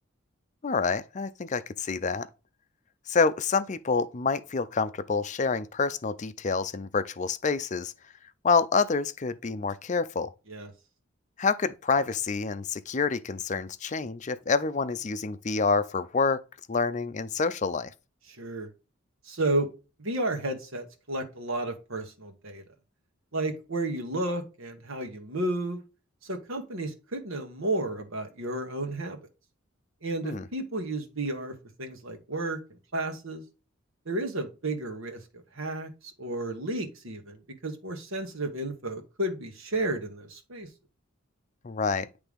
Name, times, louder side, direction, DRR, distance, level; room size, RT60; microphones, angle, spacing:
voice 1, 0.6-2.3 3.1-7.9 8.4-10.3 11.4-16.4 16.7-17.9 30.2-30.5 41.6-42.1, left 4 dB, 35° left, 0.5 m, -27 dB
voice 2, 18.3-18.7 19.2-19.7 20.0-22.6 23.3-25.8 26.2-29.2 30.0-32.6 32.9-33.4 34.0-40.7, right 2 dB, 75° right, 1.3 m, -32 dB
9.9 x 3.4 x 3.5 m
head